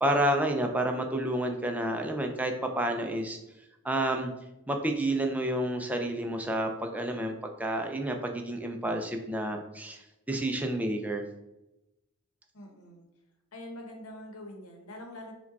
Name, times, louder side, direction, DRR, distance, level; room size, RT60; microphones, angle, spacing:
voice 1, 0.0-3.4 3.8-4.3 4.7-10.0 10.3-11.2, right 1 dB, 5° right, 3 dB, 0.3 m, -30 dB
voice 2, 12.5-13.0 13.5-15.3, left 1 dB, 85° left, 2 dB, 0.8 m, -44 dB
4.8 x 2.3 x 4.0 m, 0.94 s
head